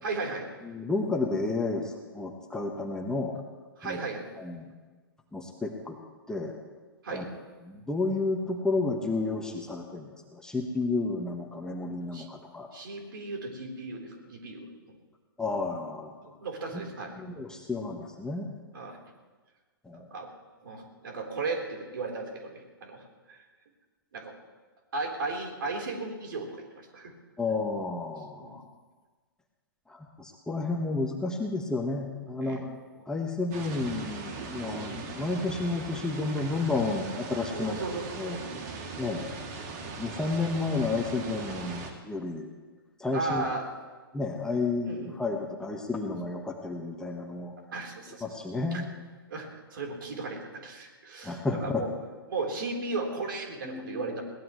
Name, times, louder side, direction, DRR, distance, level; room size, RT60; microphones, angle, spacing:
voice 1, 0.0-0.5 3.8-4.2 7.0-7.3 12.1-12.3 12.7-14.7 16.2-17.2 18.7-19.0 19.9-20.3 20.6-22.5 22.8-23.4 24.1-24.3 24.9-27.1 28.4-28.6 32.3-32.6 37.5-38.6 43.1-43.6 44.8-45.1 47.7-48.3 48.7-48.8 49.3-51.9 52.3-54.2, right 3 dB, 60° right, 1 dB, 4.0 m, -35 dB
voice 2, 0.6-3.4 3.8-4.0 4.4-4.6 5.3-6.0 6.3-6.6 7.1-7.2 7.6-12.7 15.4-16.2 17.1-18.5 19.8-20.1 27.4-28.6 29.9-32.7 33.1-37.8 38.2-38.6 39.0-39.3 40.0-42.5 43.0-43.5 44.1-47.5 48.2-48.9 51.2-51.8 53.6-54.0, left 3 dB, 5° left, 1 dB, 1.4 m, -31 dB
sound 1, 33.5-41.9, right 4 dB, 40° right, 2.7 m, -39 dB
21.5 x 18.0 x 3.2 m, 1.3 s
figure-of-eight pair, 120°, 12 cm